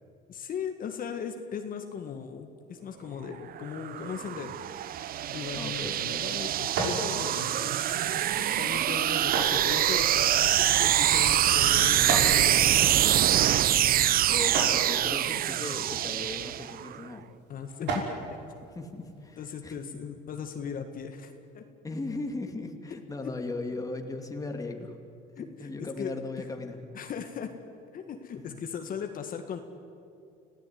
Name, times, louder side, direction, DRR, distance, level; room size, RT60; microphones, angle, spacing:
voice 1, 0.3-4.6 5.3-7.8 8.4-12.9 17.5-18.0 18.3-18.4 19.4-21.6 25.4-25.7 26.0-26.5 26.9-27.5 27.9-29.6, left 7 dB, 45° left, 5 dB, 1.9 m, -38 dB
sound 1, 3.5-17.0, right 12 dB, 50° right, 0.7 m, -25 dB
sound 2, 5.1-19.5, right 3 dB, 65° right, 5.7 m, -38 dB
voice 2, 5.5-6.2 14.3-17.3 18.8-20.0 21.8-25.0 25.4-26.9 28.3-28.6, left 3 dB, 15° left, 4 dB, 2.4 m, -38 dB
29.5 x 16.5 x 9.6 m, 2.5 s
cardioid pair, 115°, 20 cm